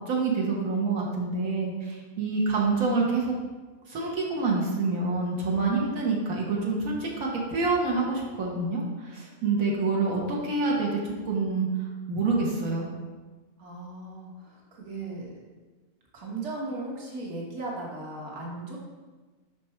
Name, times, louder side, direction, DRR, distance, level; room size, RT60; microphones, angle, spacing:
voice 1, 0.1-3.3 3.9-11.7 12.1-12.9, right 3 dB, 85° right, -3 dB, 1.5 m, -27 dB
voice 2, 13.6-15.4 16.1-18.8, right 2 dB, 60° right, -3 dB, 1.6 m, -37 dB
5.7 x 5.2 x 4.3 m, 1.3 s
omnidirectional pair, 1.4 m